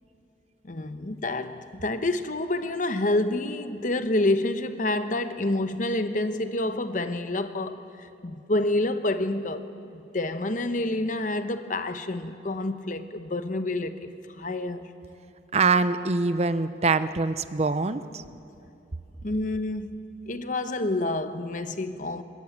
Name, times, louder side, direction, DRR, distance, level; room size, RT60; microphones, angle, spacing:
voice 1, 0.6-9.7 9.9-14.1 14.4-14.8 19.2-20.0 20.3-22.2, left 2 dB, 45° left, 1.0 m, -28 dB
voice 2, 15.5-18.2, right 4 dB, 35° right, 0.6 m, -24 dB
21.5 x 20.0 x 8.8 m
head